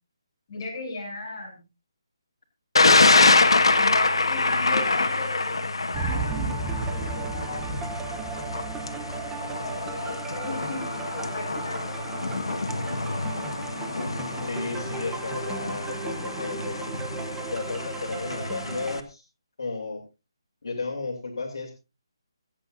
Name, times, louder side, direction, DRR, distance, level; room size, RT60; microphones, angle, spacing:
voice 1, 0.5-1.6 3.7-7.6 9.6-10.8 11.1-12.0, left 2 dB, 30° left, -2 dB, 7.8 m, -36 dB
Thunder, 2.8-19.0, left 3 dB, 85° left, 1.6 m, -25 dB
sound 1, 5.9-19.0, right 4 dB, 10° right, 0.9 m, -35 dB
voice 2, 14.4-16.8 17.5-19.2 19.6-20.0 20.6-21.7, left 3 dB, 65° left, 1 dB, 3.1 m, -33 dB
24.5 x 8.5 x 2.6 m, 0.28 s
hypercardioid pair, 170°, 3 cm